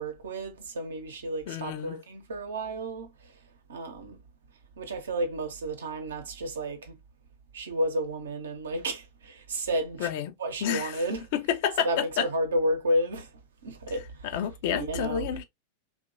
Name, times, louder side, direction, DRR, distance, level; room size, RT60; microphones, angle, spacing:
voice 1, 0.0-3.1 3.7-4.2 4.8-7.0 7.5-10.1 10.4-11.3 11.8-13.3 13.6-14.4 14.7-15.4, right 1 dB, 65° right, 0.8 m, -31 dB
voice 2, 1.5-2.0 10.0-10.3 10.6-11.0 11.3-12.3 14.3-15.4, left 9 dB, 50° left, 0.5 m, -29 dB
2.9 x 2.4 x 2.6 m
figure-of-eight pair, 90°, 0 cm